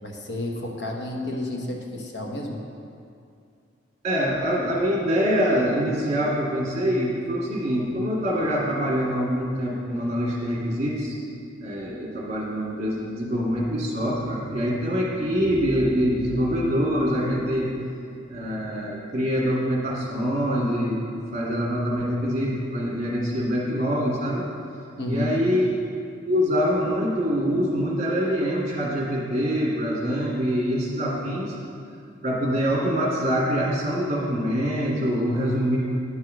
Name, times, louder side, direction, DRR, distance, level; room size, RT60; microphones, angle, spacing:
voice 1, 0.0-2.6 25.0-25.4, left 1 dB, 60° left, 0 dB, 1.0 m, -31 dB
voice 2, 4.0-11.2 11.6-17.7 18.3-21.0 21.3-24.4 25.1-25.8 26.3-31.6 32.2-35.8, equal, 35° right, -4 dB, 1.9 m, -24 dB
10.0 x 4.7 x 6.2 m, 2.4 s
head